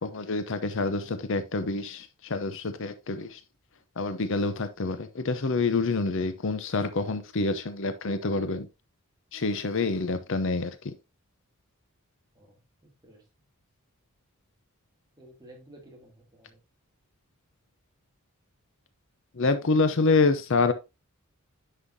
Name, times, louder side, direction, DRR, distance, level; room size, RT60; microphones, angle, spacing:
voice 1, 0.0-3.4 4.0-8.7 9.3-10.9 19.3-20.7, left 3 dB, 55° left, 0.7 m, -27 dB
voice 2, 12.3-13.2 15.2-16.6, right 1 dB, 20° right, 2.9 m, -53 dB
9.9 x 5.6 x 2.7 m
head